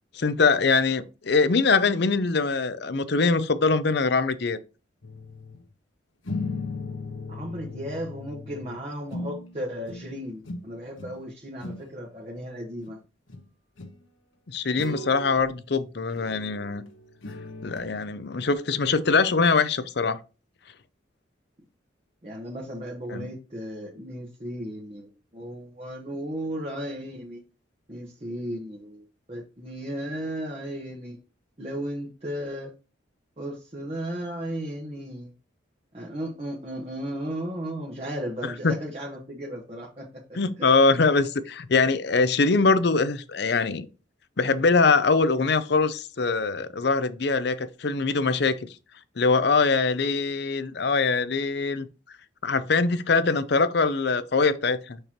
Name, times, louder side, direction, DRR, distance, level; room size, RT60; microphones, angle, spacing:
voice 1, 0.1-4.6 14.5-16.8 17.6-20.2 23.1-23.3 38.6-38.7 40.3-43.9 44.4-48.7 49.2-51.9 52.4-55.0, left 4 dB, 55° left, 0.6 m, -23 dB
sound 1, 5.0-5.7 6.2-9.6 9.9-10.2 10.4-11.2 11.5-11.9 12.8-12.9 13.3-13.5 13.8-14.0 14.8-15.5 16.1-17.9 18.4-18.5, left 2 dB, 90° left, 1.2 m, -37 dB
voice 2, 7.3-13.0 22.2-27.4 27.9-31.2 31.6-32.7 33.4-35.3 35.9-40.7, equal, 30° right, 1.1 m, -35 dB
6.5 x 6.1 x 2.9 m
head